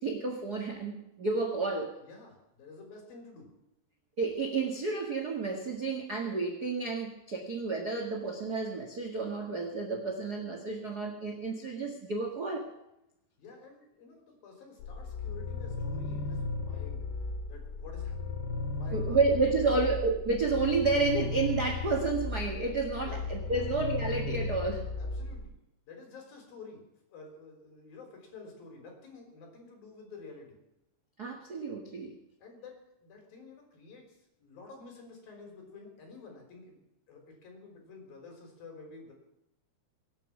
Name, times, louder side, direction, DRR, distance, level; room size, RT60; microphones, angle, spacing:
voice 1, 0.0-1.9 4.2-12.7 18.9-24.8 31.2-32.1, right 3 dB, 50° right, 2 dB, 1.1 m, -30 dB
voice 2, 2.0-3.5 13.4-17.1 17.5-20.0 23.0-23.7 25.0-25.6 25.9-30.6 32.4-39.1, left 3 dB, 60° left, 3 dB, 5.5 m, -50 dB
sound 1, 14.8-25.5, left 3 dB, 85° left, 3.9 m, -35 dB
24.0 x 9.1 x 6.0 m, 0.87 s
omnidirectional pair, 4.7 m